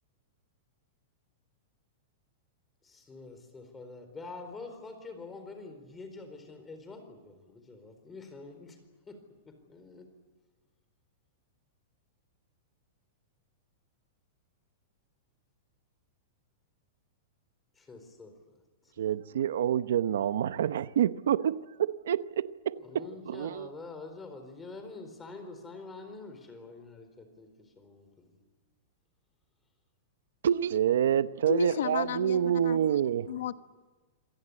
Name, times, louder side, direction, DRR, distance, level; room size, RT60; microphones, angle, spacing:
voice 1, 2.8-8.8 9.1-10.1 17.8-18.3 22.8-28.4, left 3 dB, 10° left, 4.3 m, -46 dB
voice 2, 19.0-23.7 30.4-33.3, right 9 dB, 80° right, 0.8 m, -28 dB
voice 3, 31.5-33.0 33.3-33.5, left 10 dB, 75° left, 1.2 m, -34 dB
27.0 x 18.0 x 9.7 m
supercardioid pair, 155°, 0 cm